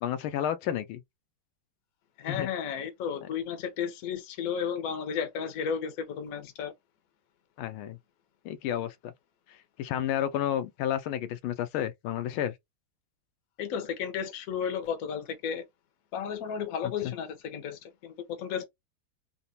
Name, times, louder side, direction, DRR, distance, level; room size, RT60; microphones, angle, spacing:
voice 1, 0.0-1.0 2.3-2.5 3.2-3.3 7.6-8.0 8.4-9.1 9.5-12.5 17.0-17.1, left 10 dB, 80° left, 1.4 m, -31 dB
voice 2, 2.2-6.7 13.6-15.6 16.1-18.7, left 7 dB, 60° left, 1.0 m, -33 dB
3.9 x 2.2 x 2.7 m
omnidirectional pair, 2.3 m